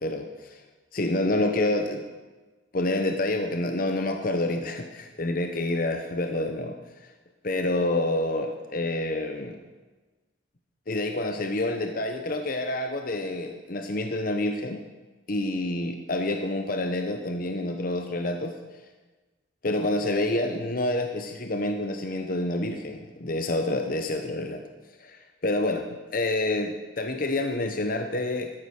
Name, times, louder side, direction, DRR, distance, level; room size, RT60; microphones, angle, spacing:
voice 1, 0.0-0.6 0.9-2.0 2.7-6.8 7.4-9.6 10.9-14.8 15.3-18.5 19.6-24.6 25.0-28.5, left 2 dB, 50° left, 5 dB, 0.9 m, -28 dB
13.0 x 8.7 x 6.4 m, 1.2 s
head